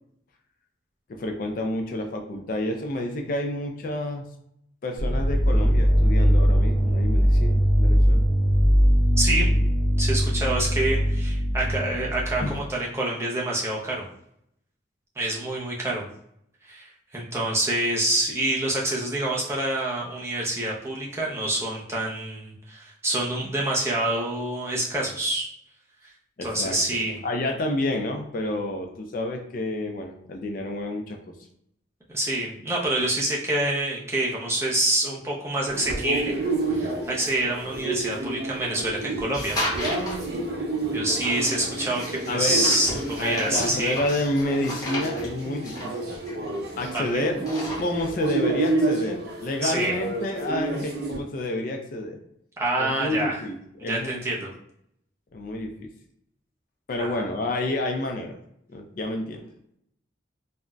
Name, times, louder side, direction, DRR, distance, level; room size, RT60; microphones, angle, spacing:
voice 1, 1.1-4.2 4.8-8.3 12.4-12.6 26.4-26.8 27.2-31.2 42.3-42.6 43.2-47.4 47.8-52.2 52.8-54.5 55.3-55.9 56.9-58.4 58.7-59.5, left 1 dB, 45° left, 3 dB, 0.4 m, -29 dB
sound 1, 5.0-12.7, equal, 90° right, 0.9 m, -20 dB
voice 2, 9.2-9.5 10.0-14.1 15.2-16.0 16.6-25.5 26.4-27.2 32.1-36.4 36.7-39.6 40.9-43.9 46.9-47.3 49.6-49.9 52.6-53.4 53.8-54.5 57.0-57.2, right 1 dB, 15° right, -4 dB, 0.5 m, -27 dB
sound 2, 35.7-51.2, right 2 dB, 55° right, 0.6 m, -30 dB
sound 3, 39.3-40.3 41.2-47.0 47.3-48.3, left 1 dB, 20° left, 0.7 m, -34 dB
3.7 x 2.1 x 2.2 m, 0.74 s
head